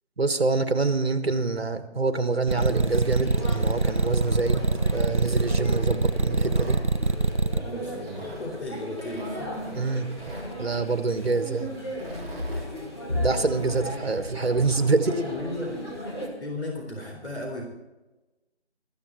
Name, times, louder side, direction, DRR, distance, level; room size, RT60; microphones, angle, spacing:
voice 1, 0.2-4.7 4.9-6.8 9.8-10.1 10.6-11.7 13.2-15.1, right 3 dB, 60° right, 10 dB, 1.5 m, -26 dB
sound 1, 2.4-16.3, left 1 dB, 25° left, 2.2 m, -36 dB
sound 2, 2.5-7.6, right 3 dB, 45° right, 0.7 m, -23 dB
Tearing, 3.2-4.9 5.4-6.8 7.9-8.4 9.0-10.5 11.9-12.7, equal, 10° right, 5.5 m, -40 dB
voice 2, 7.5-9.5 15.1-15.8 16.4-17.7, left 2 dB, 75° left, 0 dB, 3.9 m, -34 dB
14.0 x 13.5 x 4.4 m, 1.1 s
figure-of-eight pair, 165°, 34 cm